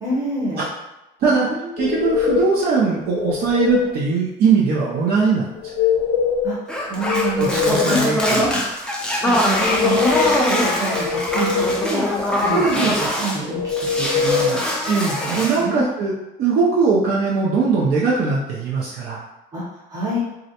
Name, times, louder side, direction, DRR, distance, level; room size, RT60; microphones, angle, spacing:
voice 1, 0.0-0.6 1.3-1.9 6.4-6.6 6.9-8.6 9.2-12.6 13.0-14.6 15.6-15.8 19.5-19.6 19.9-20.2, right 1 dB, 20° right, -8 dB, 0.9 m, -27 dB
sound 1, 1.8-2.6 3.1-4.0 5.6-6.6 6.9-8.0 9.4-10.5 10.9-11.9 13.5-14.5, left 6 dB, 85° left, 0.5 m, -22 dB
voice 2, 1.8-5.5 7.4-8.7 12.5-13.0 14.9-19.2, right 4 dB, 65° right, -5 dB, 0.5 m, -20 dB
sound 2, 6.7-13.4 13.7-15.7, left 1 dB, 5° left, 0.4 m, -22 dB
2.4 x 2.1 x 2.8 m, 0.95 s
cardioid pair, 110°, 17 cm